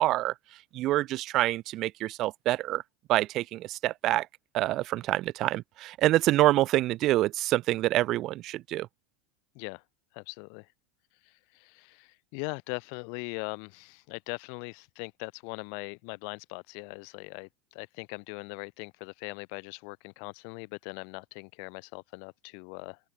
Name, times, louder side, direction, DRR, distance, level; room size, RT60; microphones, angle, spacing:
voice 1, 0.0-2.8 3.1-4.3 4.5-8.9, right 16 dB, 50° right, 1.0 m, -26 dB
voice 2, 10.1-10.7 11.5-23.0, left 40 dB or more, 60° left, 2.2 m, -40 dB
open air
hypercardioid pair, 95°, 0 cm